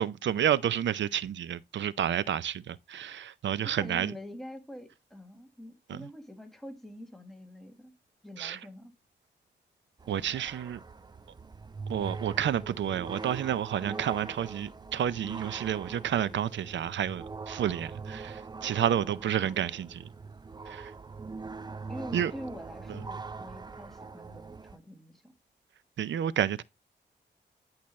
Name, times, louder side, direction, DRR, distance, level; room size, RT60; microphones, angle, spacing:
voice 1, 0.0-4.1 5.9-6.1 8.4-8.6 10.1-10.8 11.9-20.1 20.7-20.9 22.1-22.3 22.9-23.0 26.0-26.6, right 10 dB, 85° right, 0.5 m, -30 dB
voice 2, 3.7-7.9 8.2-8.9 18.9-19.3 21.9-25.2, equal, ahead, 1.6 m, -45 dB
sound 1, 10.0-24.8, right 4 dB, 25° right, 0.4 m, -42 dB
10.5 x 5.7 x 3.1 m
wide cardioid pair, 105°, 18 cm